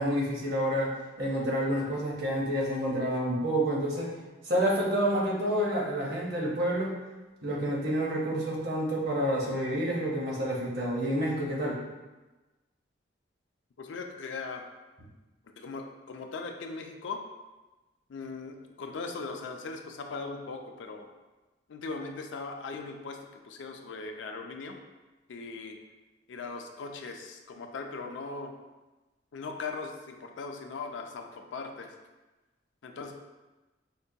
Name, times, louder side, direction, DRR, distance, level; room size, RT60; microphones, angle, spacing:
voice 1, 0.0-4.1 4.4-6.9 7.4-11.8, equal, 55° right, -3 dB, 0.8 m, -29 dB
voice 2, 13.8-14.7 15.6-17.2 18.1-21.1 21.7-23.2 23.4-24.8 25.3-25.8 26.3-28.5 29.3-31.9 32.8-33.1, left 4 dB, 70° left, 4 dB, 0.4 m, -39 dB
5.2 x 2.2 x 2.6 m, 1.1 s
head